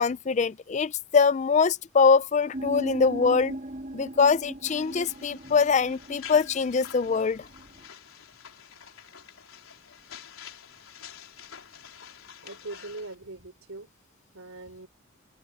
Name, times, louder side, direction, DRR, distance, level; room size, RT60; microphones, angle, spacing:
voice 1, 0.0-3.5 3.9-7.5, left 5 dB, 35° left, 0.4 m, -23 dB
sound 1, 2.5-7.9, right 1 dB, 40° right, 1.6 m, -39 dB
sound 2, 4.7-13.1, left 8 dB, 80° left, 4.2 m, -48 dB
voice 2, 12.4-13.9 14.3-14.9, right 2 dB, 80° right, 3.5 m, -41 dB
open air
head